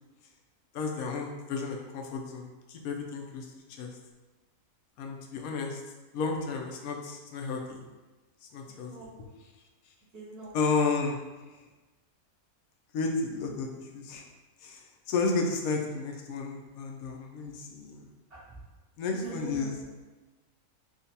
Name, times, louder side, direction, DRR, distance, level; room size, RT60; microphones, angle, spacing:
voice 1, 0.7-4.0 5.0-5.8 6.1-7.8 8.5-8.9 10.5-11.2 12.9-14.2 14.6-18.0 19.0-19.7, left 4 dB, 75° left, 2 dB, 1.0 m, -32 dB
voice 2, 10.1-10.5 18.3-18.6 19.1-19.8, right 4 dB, 80° right, -12 dB, 2.2 m, -43 dB
5.1 x 2.4 x 2.7 m, 1.2 s
omnidirectional pair, 1.6 m